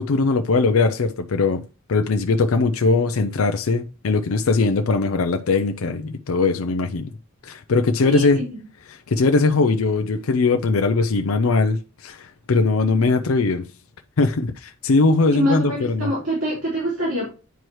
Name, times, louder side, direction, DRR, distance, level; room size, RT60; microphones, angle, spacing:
voice 1, 0.0-1.6 1.9-7.1 7.4-8.4 9.1-13.7 14.2-16.1, left 3 dB, 70° left, 0.5 m, -20 dB
voice 2, 8.0-8.6 15.3-17.3, right 1 dB, 65° right, 3.6 m, -25 dB
9.0 x 4.7 x 3.0 m
head